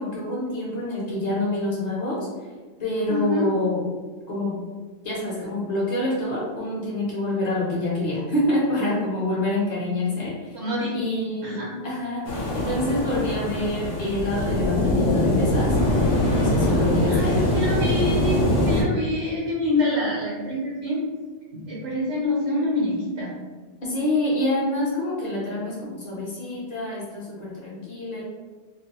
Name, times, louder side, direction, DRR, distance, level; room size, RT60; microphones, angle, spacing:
voice 1, 0.0-2.2 2.8-3.8 4.3-4.6 5.0-10.6 10.9-15.8 16.2-17.5 23.8-28.2, left 1 dB, 40° left, -6 dB, 0.8 m, -27 dB
voice 2, 3.1-3.5 10.5-11.0 11.4-11.7 16.6-16.8 17.1-18.4 18.7-21.1 21.5-23.3, left 1 dB, 65° right, -6 dB, 1.0 m, -26 dB
sound 1, 12.3-18.8, left 1 dB, 85° left, 0.9 m, -22 dB
2.5 x 2.1 x 2.8 m, 1.3 s
omnidirectional pair, 1.2 m